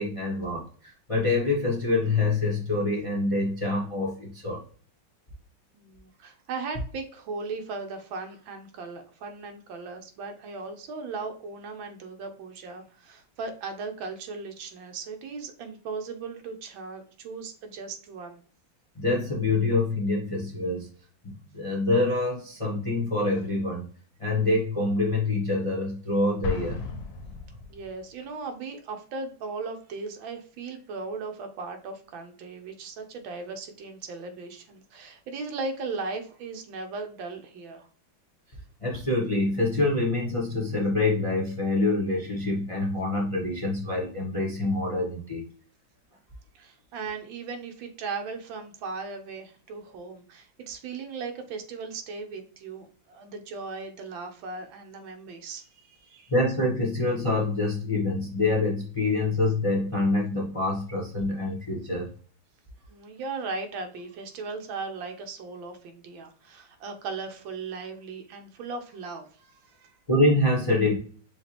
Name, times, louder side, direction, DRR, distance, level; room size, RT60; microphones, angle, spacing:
voice 1, 0.0-4.6 18.9-20.9 21.2-23.8 24.2-26.8 38.8-45.5 56.3-62.1 70.1-71.0, left 2 dB, 35° left, -2 dB, 0.5 m, -26 dB
voice 2, 5.7-18.4 27.7-37.9 46.5-56.3 62.9-70.0, right 4 dB, 70° right, 5 dB, 1.5 m, -37 dB
Explosion, 26.4-28.1, left 4 dB, 70° left, 1.4 m, -35 dB
6.3 x 2.4 x 2.9 m, 0.44 s
omnidirectional pair, 2.3 m